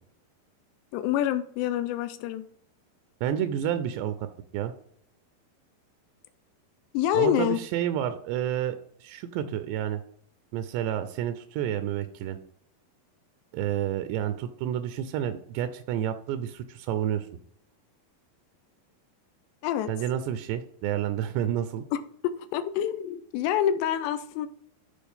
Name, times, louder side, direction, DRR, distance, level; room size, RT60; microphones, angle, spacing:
voice 1, 0.9-2.5 6.9-7.6 19.6-19.9 21.9-24.5, left 10 dB, 90° left, 9 dB, 2.8 m, -27 dB
voice 2, 3.2-4.3 4.5-4.7 7.1-10.0 10.5-12.4 13.5-17.3 19.9-21.9, right 10 dB, 85° right, 10 dB, 2.7 m, -30 dB
13.5 x 4.8 x 3.5 m, 0.65 s
omnidirectional pair, 4.9 m